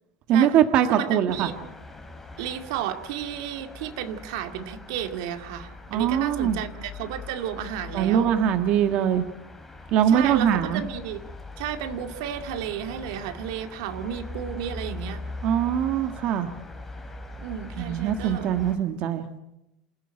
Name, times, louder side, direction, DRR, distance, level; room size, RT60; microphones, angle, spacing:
voice 1, 0.3-1.5 5.9-6.6 7.9-9.3 9.9-10.8 15.4-16.5 17.8-19.3, right 9 dB, 45° right, 7 dB, 1.6 m, -22 dB
voice 2, 0.8-1.5 2.4-8.3 10.1-11.2 11.6-15.2 17.4-18.5, right 9 dB, 80° right, 7 dB, 2.2 m, -33 dB
sound 1, 1.3-18.8, left 2 dB, 10° left, 3.3 m, -41 dB
27.5 x 15.0 x 8.9 m, 0.88 s
supercardioid pair, 145°, 3 cm